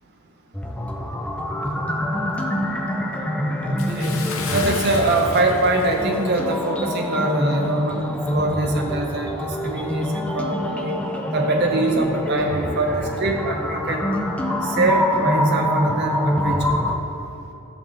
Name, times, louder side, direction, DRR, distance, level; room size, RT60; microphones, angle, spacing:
sound 1, 0.5-17.0, equal, 5° left, 0.6 m, -25 dB
voice 1, 3.4-4.1 4.5-11.0 11.3-14.0 14.6-16.7, right 2 dB, 50° right, 2 dB, 0.7 m, -23 dB
Bathtub (filling or washing) / Splash splatter, 3.8-6.6 7.0-7.1 7.7-7.8, left 4 dB, 70° left, 1.0 m, -34 dB
11.0 x 7.1 x 3.9 m, 2.9 s
head